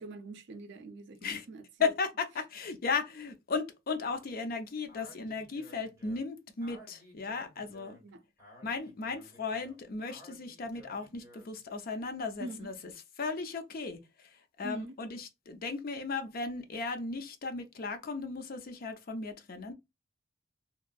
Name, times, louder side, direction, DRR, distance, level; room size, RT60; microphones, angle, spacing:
voice 1, 0.0-1.9 8.0-8.2 12.4-12.7 14.6-15.0, right 2 dB, 65° right, 0.5 m, -44 dB
voice 2, 1.8-8.0 8.6-12.7 13.2-19.7, left 4 dB, 50° left, 0.5 m, -36 dB
Speech, 4.9-11.6, equal, 15° right, 1.5 m, -56 dB
2.9 x 2.5 x 2.2 m
head